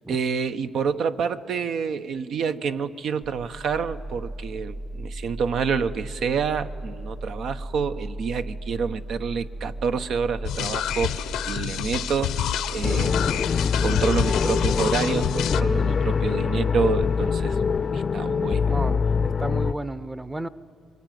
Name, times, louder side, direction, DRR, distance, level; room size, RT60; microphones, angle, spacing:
voice 1, 0.1-13.5 13.8-17.6 17.9-18.7, right 6 dB, 70° right, 9 dB, 1.0 m, -28 dB
sound 1, 3.2-15.7, right 1 dB, 50° right, 2.2 m, -36 dB
sound 2, 10.4-15.6, left 11 dB, 85° left, 0.8 m, -29 dB
sound 3, 12.8-19.7, left 5 dB, 40° left, 0.6 m, -24 dB
voice 2, 18.7-20.5, right 2 dB, 15° right, 15 dB, 0.8 m, -32 dB
27.0 x 23.0 x 9.3 m, 2.4 s
cardioid pair, 90°, 0 cm